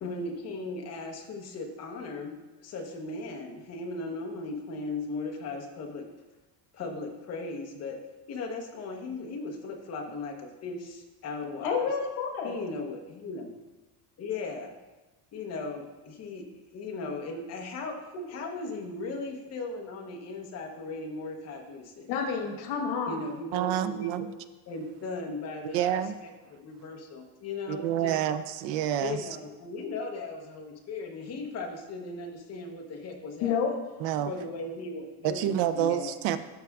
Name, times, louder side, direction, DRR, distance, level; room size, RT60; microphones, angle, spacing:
voice 1, 0.0-2.4 2.6-6.1 6.7-8.0 8.3-11.9 12.4-13.5 14.2-14.7 15.3-16.5 16.7-18.0 18.3-22.1 23.1-24.2 24.7-28.2 29.0-33.7 34.3-36.1, left 3 dB, 35° left, 2 dB, 0.9 m, -37 dB
voice 2, 11.6-12.6 18.1-18.3 22.1-23.2 33.4-33.7, left 6 dB, 80° left, 2 dB, 1.4 m, -29 dB
voice 3, 23.5-24.3 25.7-26.1 27.7-29.2 34.0-34.3 35.2-36.4, right 11 dB, 70° right, 12 dB, 0.6 m, -28 dB
12.5 x 4.7 x 2.3 m, 1.1 s
cardioid pair, 170°, 44 cm